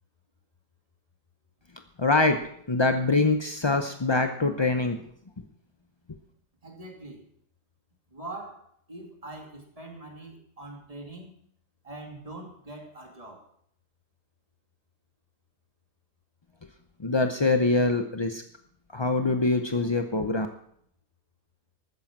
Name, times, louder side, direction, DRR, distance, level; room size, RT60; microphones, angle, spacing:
voice 1, 2.0-2.4 2.7-5.0 17.0-18.4 18.9-20.5, left 3 dB, 45° left, 6 dB, 0.3 m, -24 dB
voice 2, 6.6-7.2 8.1-11.3 11.8-13.5, right 2 dB, 20° right, 2 dB, 2.5 m, -43 dB
13.5 x 9.6 x 6.0 m, 0.66 s
omnidirectional pair, 1.7 m